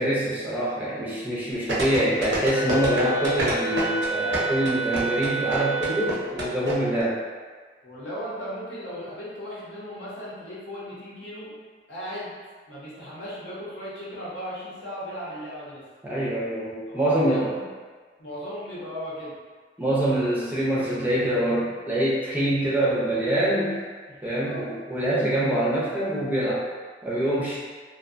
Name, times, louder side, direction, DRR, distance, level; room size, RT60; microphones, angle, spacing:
voice 1, 0.0-7.2 16.0-17.5 19.8-23.8 24.2-26.6 27.0-27.6, right 1 dB, 10° right, -8 dB, 0.4 m, -25 dB
sound 1, 1.7-6.7 7.0-7.1, right 2 dB, 80° right, 0.6 m, -27 dB
Wind instrument woodwind instrument, 2.5-6.3, right 2 dB, 60° left, 0.4 m, -28 dB
voice 2, 7.8-11.5 11.9-12.3 12.7-15.8 16.9-17.6 18.2-19.3 23.0-23.1 24.1-24.7, equal, 75° left, -8 dB, 0.8 m, -36 dB
2.5 x 2.2 x 2.4 m, 1.5 s
head